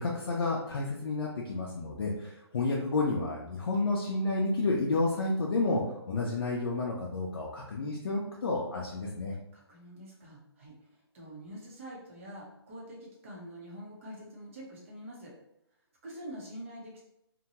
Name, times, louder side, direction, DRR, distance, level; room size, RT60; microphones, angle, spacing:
voice 1, 0.0-9.3, left 3 dB, 60° left, -4 dB, 0.5 m, -30 dB
voice 2, 9.5-10.9 11.1-15.3 16.0-17.0, equal, 30° right, -4 dB, 0.7 m, -45 dB
2.8 x 2.2 x 2.8 m, 0.81 s
hypercardioid pair, 165°, 14 cm